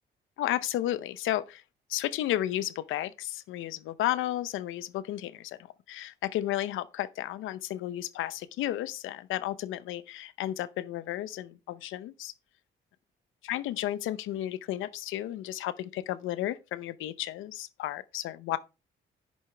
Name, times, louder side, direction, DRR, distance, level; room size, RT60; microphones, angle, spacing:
voice 1, 0.4-1.6 1.9-5.6 5.9-12.3 13.5-18.6, left 13 dB, 80° left, 0.8 m, -33 dB
10.5 x 7.2 x 3.4 m
supercardioid pair, 65°, 20 cm